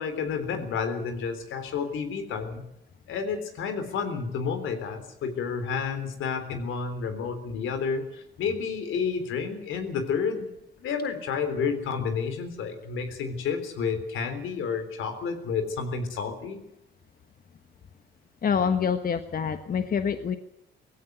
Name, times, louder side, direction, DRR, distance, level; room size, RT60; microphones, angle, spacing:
voice 1, 0.0-2.6 3.1-10.5 10.8-16.6, left 5 dB, 80° left, 9 dB, 3.7 m, -30 dB
voice 2, 18.4-20.4, left 6 dB, 45° left, 9 dB, 1.4 m, -26 dB
18.5 x 16.0 x 9.5 m, 0.78 s
cardioid pair, 90°, 20 cm